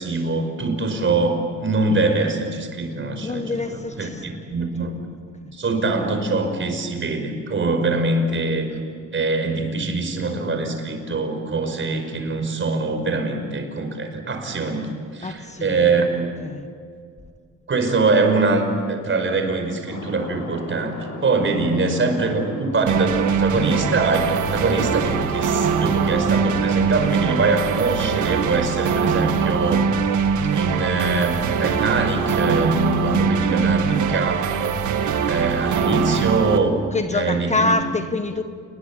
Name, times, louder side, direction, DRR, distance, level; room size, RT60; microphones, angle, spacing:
voice 1, 0.0-4.1 4.5-4.9 5.5-8.7 9.1-16.3 17.7-20.9 21.2-29.9 30.5-34.8 35.3-36.9 37.1-37.7, right 3 dB, 40° right, 5.4 m, -23 dB
voice 2, 3.2-4.2 4.8-4.9 5.4-5.5 15.2-16.0 16.4-16.7 21.6-21.8 33.6-34.1 36.9-38.4, left 3 dB, 25° left, 1.3 m, -26 dB
sound 1, 19.8-27.3, left 3 dB, 80° left, 6.9 m, -38 dB
sound 2, 22.9-36.6, right 6 dB, 75° right, 2.0 m, -22 dB
29.0 x 21.0 x 8.8 m
cardioid pair, 90°, 30 cm